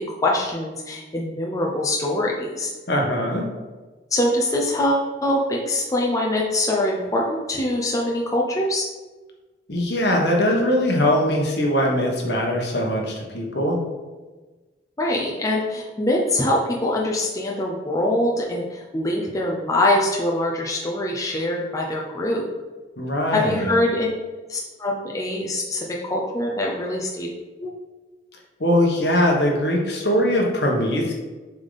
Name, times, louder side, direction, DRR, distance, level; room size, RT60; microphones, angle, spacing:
voice 1, 0.0-2.7 4.1-8.9 15.0-22.5 23.3-24.1 24.5-27.3 27.6-27.7, left 1 dB, 20° left, -2 dB, 0.6 m, -23 dB
voice 2, 2.9-3.4 9.7-13.8 23.0-23.8 28.6-31.1, equal, 65° left, 0 dB, 1.3 m, -21 dB
6.8 x 3.6 x 4.0 m, 1.2 s
head